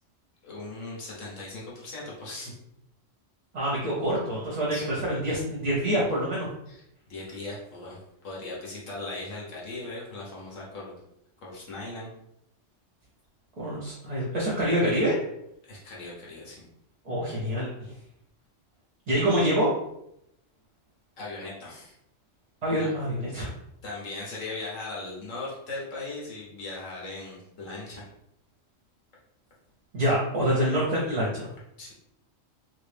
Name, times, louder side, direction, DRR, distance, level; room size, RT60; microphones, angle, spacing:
voice 1, 0.4-2.5 4.7-4.8 6.7-6.8 7.1-8.0 8.2-10.9 11.4-12.1 15.7-16.7 21.2-21.9 22.8-22.9 23.8-28.1 31.8-31.9, left 2 dB, 80° left, -5 dB, 1.5 m, -38 dB
voice 2, 3.5-6.5 13.6-15.2 17.0-17.9 19.1-19.7 22.6-23.5 29.9-31.5, equal, 35° right, -5 dB, 0.8 m, -26 dB
3.1 x 2.6 x 3.4 m, 0.79 s
omnidirectional pair, 1.3 m